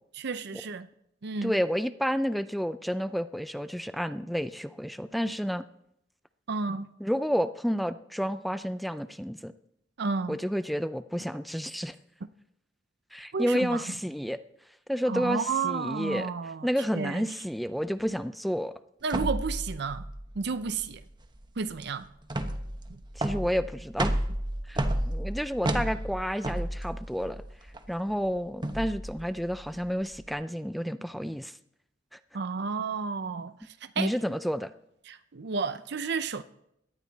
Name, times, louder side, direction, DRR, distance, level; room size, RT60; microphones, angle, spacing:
voice 1, 0.1-0.9 1.2-1.5 6.5-6.9 10.0-10.4 13.3-13.8 15.1-16.7 16.9-17.3 19.0-20.1 20.3-21.0 21.6-22.1 22.9-23.0 32.3-34.2 35.1-36.4, right 5 dB, 60° right, 0.6 m, -32 dB
voice 2, 1.4-5.7 7.0-9.5 10.3-12.0 13.1-14.4 14.9-16.3 16.6-18.7 23.2-24.1 24.7-27.4 27.9-31.6 32.1-32.2 34.0-34.7, equal, ahead, 0.4 m, -30 dB
sound 1, 19.1-30.3, right 1 dB, 25° right, 1.1 m, -33 dB
18.0 x 11.5 x 4.0 m
head